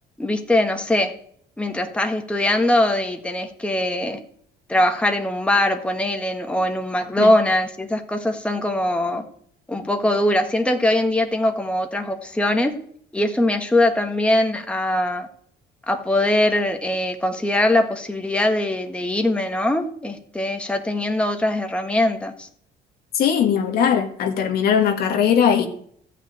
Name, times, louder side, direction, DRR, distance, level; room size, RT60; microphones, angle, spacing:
voice 1, 0.2-1.1 1.6-4.2 4.7-9.2 9.7-12.7 13.1-15.3 15.9-22.5, left 1 dB, 5° left, 1.5 m, -21 dB
voice 2, 23.1-25.7, left 8 dB, 65° left, 1.9 m, -19 dB
14.0 x 5.8 x 9.3 m
cardioid pair, 110°, 17 cm